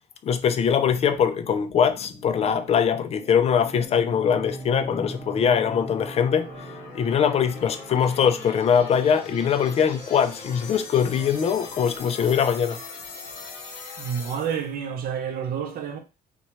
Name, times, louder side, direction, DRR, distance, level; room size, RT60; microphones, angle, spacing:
voice 1, 0.2-6.5 6.9-12.8, left 7 dB, 40° left, 0.4 m, -22 dB
sound 1, 0.7-14.7, left 4 dB, 85° left, 1.0 m, -42 dB
sound 2, 3.7-12.9, right 2 dB, 10° right, 1.1 m, -43 dB
voice 2, 14.0-16.0, right 8 dB, 60° right, 0.6 m, -29 dB
2.7 x 2.2 x 3.0 m
cardioid pair, 110°, 17 cm